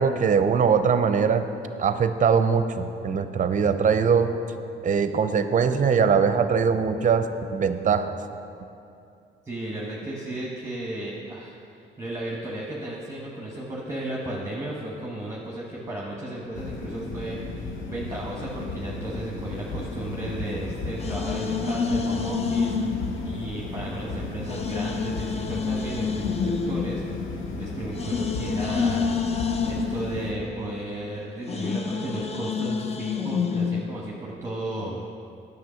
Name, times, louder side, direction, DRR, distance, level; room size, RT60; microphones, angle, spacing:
voice 1, 0.0-1.5 1.8-4.3 4.8-8.1, right 6 dB, 40° right, 10 dB, 0.6 m, -21 dB
voice 2, 9.4-11.5 12.0-27.0 27.3-29.2 29.6-35.1, right 1 dB, 15° right, -3 dB, 1.2 m, -34 dB
sound 1, 16.5-30.3, left 3 dB, 80° left, 0.9 m, -34 dB
sound 2, 20.3-24.0 24.5-33.9, left 5 dB, 30° left, 0.5 m, -29 dB
9.4 x 6.8 x 5.0 m, 2.6 s
cardioid pair, 90°, 20 cm